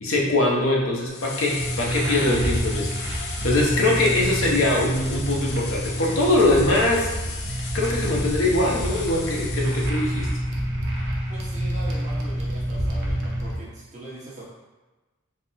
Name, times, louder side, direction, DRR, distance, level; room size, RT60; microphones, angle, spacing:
voice 1, 0.0-2.9 3.2-7.1 7.7-10.3, left 2 dB, 75° left, -3 dB, 0.8 m, -22 dB
sound 1, 1.1-10.4, left 4 dB, 55° left, 0.5 m, -36 dB
sound 2, 1.5-13.6, right 1 dB, 55° right, 0.6 m, -28 dB
voice 2, 11.3-14.4, right 2 dB, 35° right, -6 dB, 1.0 m, -41 dB
4.1 x 2.0 x 4.0 m, 1.2 s
head